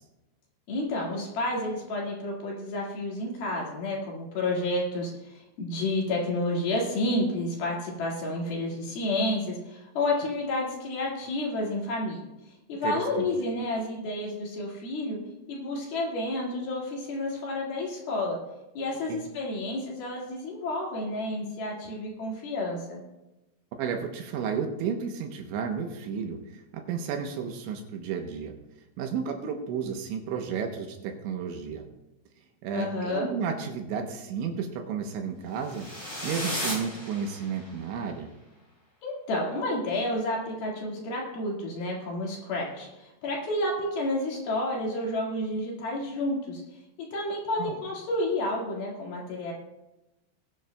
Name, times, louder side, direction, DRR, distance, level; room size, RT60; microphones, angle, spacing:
voice 1, 0.7-12.3 12.7-15.2 15.5-18.4 18.7-23.0 32.7-33.3 39.0-46.6 47.0-49.5, left 1 dB, 60° left, -2 dB, 3.4 m, -30 dB
voice 2, 12.8-13.3 19.1-19.2 23.8-28.5 29.0-31.9 32.6-35.9 36.2-38.3 47.6-47.7, right 6 dB, 80° right, 4 dB, 3.0 m, -32 dB
sound 1, 35.6-37.8, equal, 10° left, 2.8 m, -35 dB
20.5 x 9.5 x 2.2 m, 0.98 s
omnidirectional pair, 5.7 m